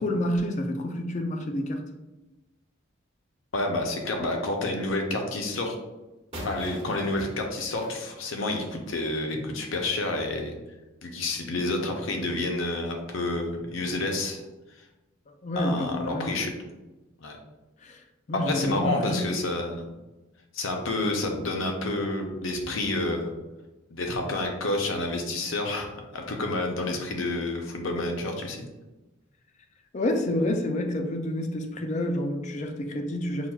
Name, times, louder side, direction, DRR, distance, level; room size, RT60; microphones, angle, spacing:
voice 1, 0.0-1.8 15.4-16.3 17.8-18.0 18.3-19.3 29.9-33.5, left 1 dB, 35° left, 5 dB, 0.4 m, -28 dB
voice 2, 3.5-5.7 6.4-10.5 11.0-14.4 15.6-16.5 17.2-17.4 18.3-19.9 20.5-23.3 23.9-28.6, left 2 dB, 75° left, 3 dB, 0.6 m, -29 dB
sound 1, 6.3-9.0, equal, 30° right, 0.9 m, -41 dB
5.6 x 2.3 x 2.3 m, 1.1 s
head